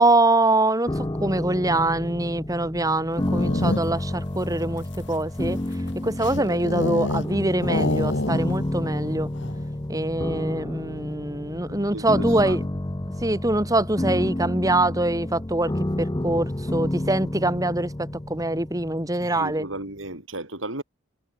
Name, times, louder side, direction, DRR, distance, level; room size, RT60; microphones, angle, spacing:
voice 1, 0.0-5.6 6.0-9.3 9.9-12.6 13.2-15.7 16.0-17.9 18.3-19.6, right 2 dB, 15° right, 2.7 m, -24 dB
sound 1, 0.9-19.8, left 1 dB, 20° left, 0.8 m, -30 dB
sound 2, 3.1-4.1 4.8-7.3 7.6-8.7 9.0-9.1 9.4-9.7, left 2 dB, 60° left, 1.2 m, -28 dB
voice 2, 11.7-12.7 19.2-20.8, right 2 dB, 75° right, 5.6 m, -35 dB
head